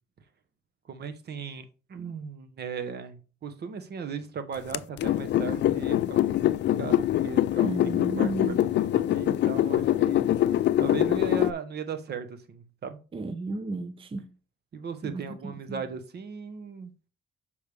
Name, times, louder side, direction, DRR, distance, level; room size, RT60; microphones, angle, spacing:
voice 1, 0.9-10.3 10.8-13.0 14.7-16.9, right 6 dB, 55° right, 1.1 m, -37 dB
sound 1, 4.7-11.5, left 13 dB, 60° left, 0.4 m, -24 dB
voice 2, 7.6-8.7 13.1-14.3 15.0-15.9, right 3 dB, 25° right, 0.6 m, -34 dB
6.6 x 5.1 x 3.4 m
cardioid pair, 90°, 20 cm